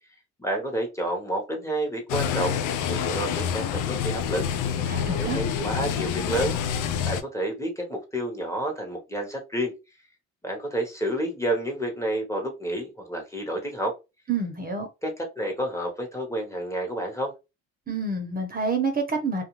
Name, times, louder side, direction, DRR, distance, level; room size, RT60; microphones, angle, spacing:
voice 1, 0.4-2.6 2.9-4.4 5.2-6.6 7.0-9.7 10.4-13.9 15.0-17.3, right 1 dB, 10° left, 2 dB, 0.9 m, -29 dB
sound 1, 2.1-7.2, left 8 dB, 85° left, 0.5 m, -27 dB
voice 2, 4.9-5.4 14.3-14.9 17.9-19.4, right 4 dB, 30° right, 5 dB, 0.7 m, -28 dB
2.4 x 2.2 x 3.0 m, 0.26 s
cardioid pair, 90°, 30 cm